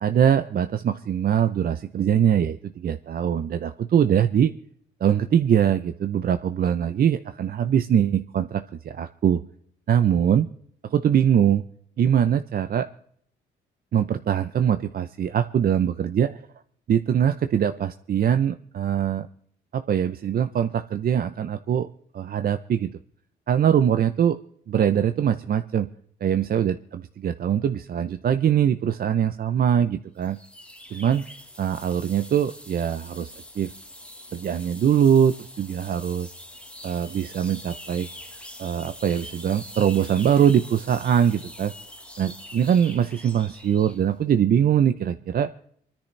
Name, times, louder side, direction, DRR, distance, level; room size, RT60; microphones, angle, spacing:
voice 1, 0.0-4.5 5.0-9.4 9.9-10.5 10.8-11.6 12.0-12.9 13.9-16.3 16.9-19.3 19.7-21.9 22.1-23.0 23.5-24.4 24.7-25.9 26.2-30.4 30.9-31.3 31.6-33.7 34.3-36.3 36.8-38.1 38.6-41.7 42.2-45.5, right 9 dB, 50° right, 10 dB, 0.6 m, -22 dB
sound 1, 30.2-44.1, left 1 dB, 5° left, 1.3 m, -44 dB
27.5 x 10.0 x 3.3 m, 0.65 s
cardioid pair, 90°, 20 cm